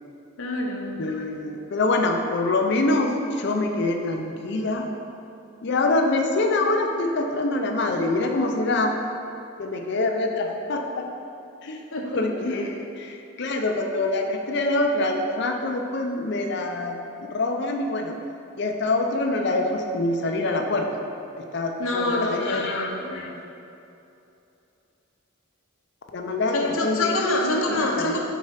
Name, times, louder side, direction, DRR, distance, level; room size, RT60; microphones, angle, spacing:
voice 1, 0.4-1.0 11.9-12.4 21.8-23.3 26.5-28.2, left 2 dB, 80° left, 0 dB, 0.8 m, -26 dB
voice 2, 1.0-4.9 5.6-9.0 9.6-11.1 11.6-11.9 12.1-18.2 18.6-21.0 21.4-23.4 26.1-27.2 27.7-28.2, left 2 dB, 55° left, 3 dB, 0.6 m, -25 dB
4.7 x 4.3 x 5.7 m, 2.8 s
head